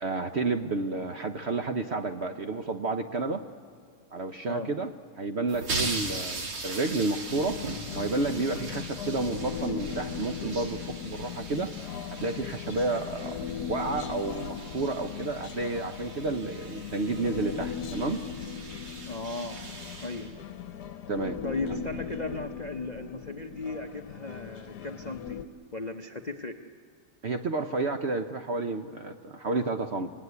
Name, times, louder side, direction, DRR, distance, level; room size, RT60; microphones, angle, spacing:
voice 1, 0.0-3.4 4.1-4.9 5.2-7.6 7.9-11.7 12.1-13.4 13.7-18.2 21.1-21.4 27.2-30.1, right 3 dB, 50° right, 6 dB, 0.8 m, -30 dB
sound 1, 5.5-20.9, right 3 dB, 85° right, 3.0 m, -40 dB
Human voice, 7.3-25.5, left 7 dB, 70° left, 1.3 m, -38 dB
voice 2, 19.1-19.6 20.0-20.3 21.4-25.4 25.7-26.6, left 3 dB, 40° left, 5 dB, 0.6 m, -36 dB
26.0 x 19.5 x 9.6 m, 2.2 s
omnidirectional pair, 1.9 m